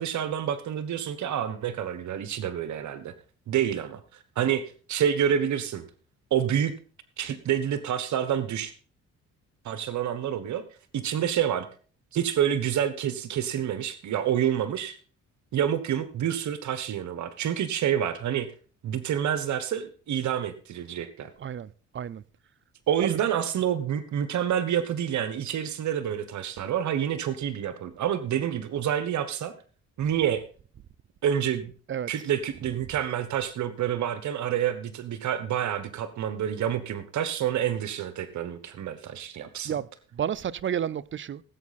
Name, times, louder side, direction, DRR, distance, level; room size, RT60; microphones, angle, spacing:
voice 1, 0.0-3.1 3.5-4.0 4.4-4.6 4.9-5.8 6.3-6.7 7.2-8.7 9.6-10.6 10.9-11.7 12.1-15.0 15.5-18.5 18.8-21.3 22.9-29.5 30.0-30.4 31.2-31.7 32.1-39.7, right 9 dB, 70° right, 1.3 m, -28 dB
voice 2, 21.4-22.2 23.0-23.2 30.1-30.2 31.9-32.1 39.6-41.4, right 9 dB, 40° right, 0.6 m, -32 dB
17.0 x 8.3 x 4.2 m
cardioid pair, 90°, 30 cm